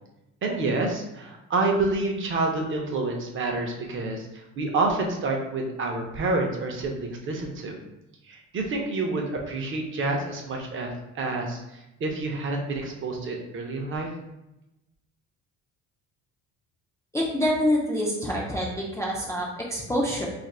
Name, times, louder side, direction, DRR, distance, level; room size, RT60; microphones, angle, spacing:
voice 1, 0.4-7.8 8.3-14.1, right 3 dB, 35° right, 1 dB, 0.6 m, -28 dB
voice 2, 17.1-20.3, equal, 10° left, -5 dB, 0.3 m, -26 dB
2.5 x 2.5 x 4.1 m, 0.94 s
cardioid pair, 135°, 35 cm